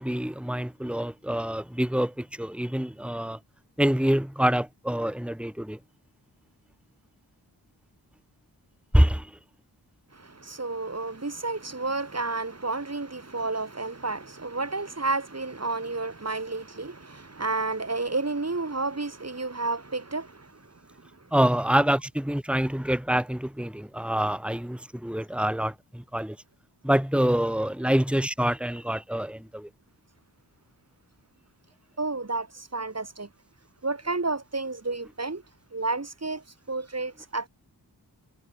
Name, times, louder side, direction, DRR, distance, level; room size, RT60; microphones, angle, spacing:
voice 1, 0.0-3.4 3.8-5.8 8.9-9.3 21.3-26.4 26.8-29.7, equal, 5° right, 3.0 m, -26 dB
voice 2, 10.1-20.5 32.0-33.3 33.8-35.4 35.7-37.5, right 3 dB, 40° right, 4.8 m, -31 dB
wide cardioid pair, 70°, 41 cm